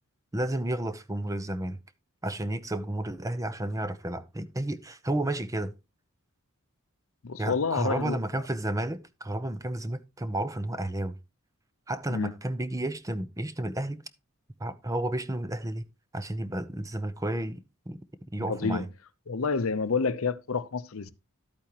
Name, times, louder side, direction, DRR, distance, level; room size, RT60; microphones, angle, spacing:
voice 1, 0.3-1.8 2.2-5.7 7.4-11.2 11.9-14.0 14.6-15.8 16.1-18.0 18.3-18.9, right 1 dB, 15° right, 0.6 m, -32 dB
voice 2, 7.2-8.2 12.1-12.3 18.5-18.8 19.3-21.1, left 4 dB, 65° left, 0.7 m, -28 dB
12.0 x 8.6 x 2.9 m
head